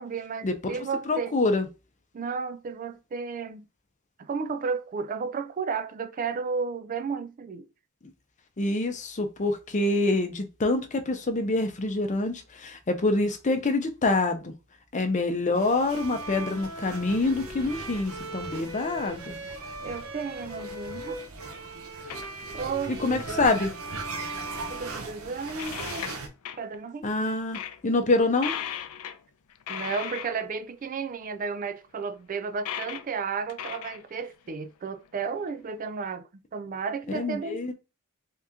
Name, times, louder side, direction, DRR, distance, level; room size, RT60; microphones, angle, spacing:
voice 1, 0.0-1.4 2.1-3.7 4.2-7.7 19.8-21.2 21.9-22.1 22.5-23.5 24.7-26.1 26.6-27.1 29.7-37.7, right 5 dB, 40° right, 0.4 m, -33 dB
voice 2, 1.0-1.7 8.6-14.5 14.9-19.4 23.0-23.7 27.0-28.5 37.1-37.7, left 2 dB, 35° left, 0.6 m, -26 dB
sound 1, 15.5-26.3, right 3 dB, 70° right, 0.8 m, -41 dB
Bowed string instrument, 15.9-25.7, right 1 dB, 85° right, 1.3 m, -40 dB
sound 2, 22.1-22.7 23.0-23.5 24.5-24.6 25.0-25.1 25.5-26.8 27.2-27.3 27.5-27.8 28.4-29.2 29.5-30.5 31.6-31.7 32.6-33.1 33.5-34.5 35.1-35.2 36.0-36.1, left 9 dB, 85° left, 0.4 m, -37 dB
3.7 x 2.9 x 3.6 m
head